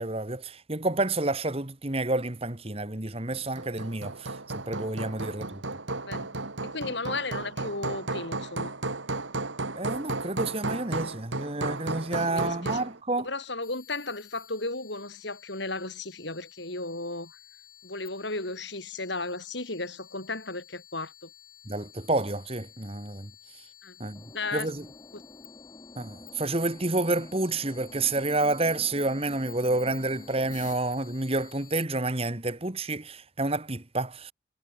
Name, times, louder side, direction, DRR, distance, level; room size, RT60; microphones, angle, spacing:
voice 1, 0.0-5.6 9.8-13.3 21.7-23.3 24.0-24.2 24.5-24.8 26.0-34.3, right 2 dB, 30° right, 1.6 m, -29 dB
Hammer, 3.3-13.0, right 2 dB, 70° right, 2.4 m, -34 dB
voice 2, 6.0-6.4 6.6-8.7 12.1-12.9 13.2-17.4 17.8-21.3 23.8-24.0 24.3-24.7 25.1-25.2, left 2 dB, 60° left, 6.0 m, -35 dB
sound 1, 13.6-31.9, left 11 dB, 40° left, 5.7 m, -52 dB
sound 2, 24.2-30.8, equal, 20° left, 3.6 m, -49 dB
head